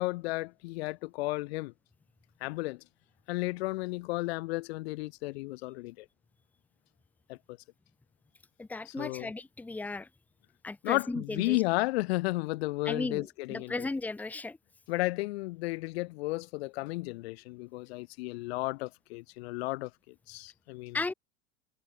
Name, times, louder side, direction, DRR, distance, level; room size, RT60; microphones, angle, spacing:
voice 1, 0.0-1.7 2.4-2.8 3.3-6.1 7.3-7.4 8.9-9.3 10.8-13.9 14.9-21.0, left 21 dB, 60° left, 2.4 m, -33 dB
voice 2, 8.6-10.1 10.6-11.6 12.8-14.6 20.9-21.1, left 3 dB, 5° left, 1.6 m, -35 dB
supercardioid pair, 170°, 35 cm